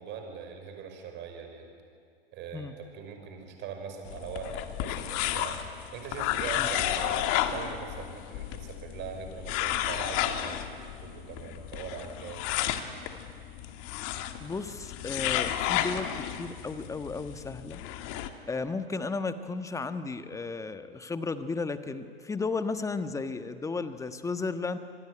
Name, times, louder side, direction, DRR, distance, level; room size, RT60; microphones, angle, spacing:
voice 1, 0.0-1.7 2.3-12.9, right 6 dB, 35° right, 5 dB, 5.8 m, -41 dB
sound 1, 4.1-18.3, left 12 dB, 45° left, 2.0 m, -32 dB
voice 2, 14.4-17.8 18.5-24.8, left 4 dB, 10° left, 10 dB, 1.4 m, -34 dB
27.0 x 21.5 x 9.9 m, 2.2 s
hypercardioid pair, 110°, 30 cm